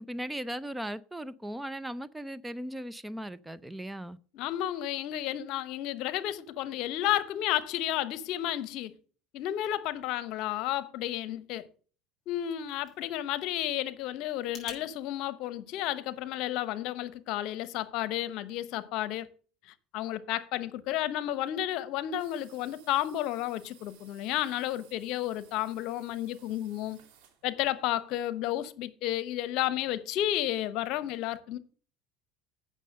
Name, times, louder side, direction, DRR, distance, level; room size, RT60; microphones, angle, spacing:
voice 1, 0.0-4.2, equal, 5° right, 0.5 m, -38 dB
voice 2, 4.3-8.9 9.3-11.7 12.3-19.3 19.9-27.0 27.4-31.6, left 13 dB, 65° left, 0.9 m, -32 dB
sound 1, 12.2-14.8, left 4 dB, 25° left, 6.1 m, -51 dB
sound 2, 22.2-27.4, right 9 dB, 65° right, 2.9 m, -59 dB
8.3 x 6.5 x 6.4 m
supercardioid pair, 95°, 0 cm